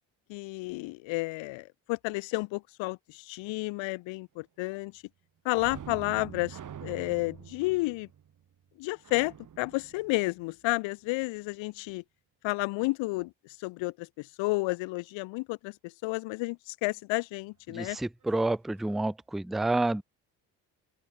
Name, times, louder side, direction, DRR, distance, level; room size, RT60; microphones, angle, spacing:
voice 1, 0.3-5.0 5.4-8.1 8.8-12.0 12.4-13.3 13.6-18.0, left 23 dB, 70° left, 0.8 m, -31 dB
sound 1, 5.5-10.9 18.3-18.4 18.8-18.9, right 9 dB, 40° right, 1.2 m, -46 dB
voice 2, 17.7-20.0, right 2 dB, ahead, 0.5 m, -29 dB
open air
hypercardioid pair, 50°, 47 cm